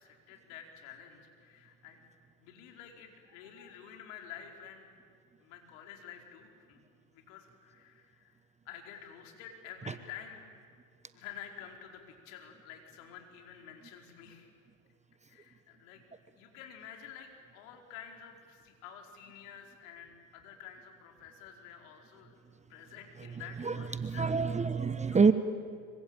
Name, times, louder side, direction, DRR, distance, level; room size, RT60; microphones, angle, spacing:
voice 1, 0.0-2.0 2.4-4.9 5.4-6.8 7.1-8.4 8.6-10.4 11.1-14.5 15.3-16.0 16.4-22.4 22.7-24.3 25.1-25.3, left 9 dB, 65° left, 3 dB, 4.9 m, -50 dB
voice 2, 23.6-25.3, right 5 dB, 15° right, 12 dB, 1.1 m, -27 dB
25.5 x 24.0 x 9.0 m, 2.2 s
hypercardioid pair, 80°, 42 cm